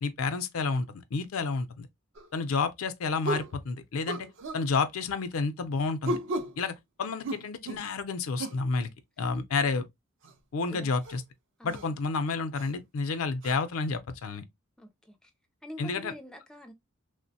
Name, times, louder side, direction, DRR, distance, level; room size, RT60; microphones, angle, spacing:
voice 1, 0.0-1.9 2.3-4.3 4.5-6.2 6.6-8.9 9.2-9.9 10.5-11.2 11.6-14.4 15.8-16.1, left 4 dB, 85° left, 0.5 m, -30 dB
sound 1, 2.1-2.3 3.2-3.5 4.1-4.6 6.0-6.6 7.2-7.9 8.4-8.6 10.2-10.3 11.0-11.2 11.7-11.9 12.6-12.7 13.4-13.5, right 1 dB, 60° right, 0.5 m, -34 dB
voice 2, 10.7-11.0 11.6-12.0 14.8-15.3 15.6-16.7, equal, 5° left, 0.3 m, -46 dB
3.1 x 2.1 x 2.6 m
head